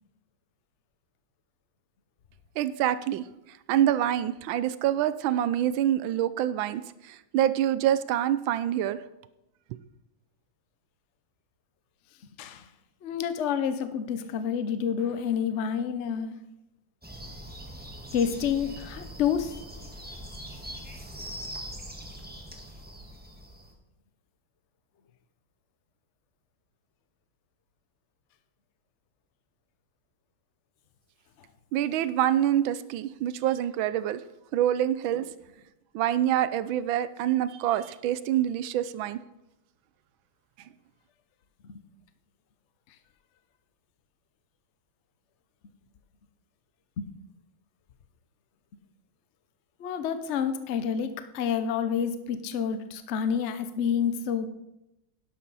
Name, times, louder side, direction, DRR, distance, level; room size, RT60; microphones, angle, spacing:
voice 1, 2.6-3.2 3.7-6.8 7.3-9.0 31.7-34.2 34.5-35.3 35.9-39.2, right 11 dB, 75° right, 14 dB, 1.3 m, -26 dB
voice 2, 13.0-16.4 18.1-19.5 41.6-41.8 47.0-47.1 49.8-54.5, left 7 dB, 85° left, 10 dB, 0.6 m, -29 dB
sound 1, 17.0-23.7, equal, 5° right, 1.1 m, -42 dB
11.5 x 11.0 x 4.1 m, 0.92 s
omnidirectional pair, 2.4 m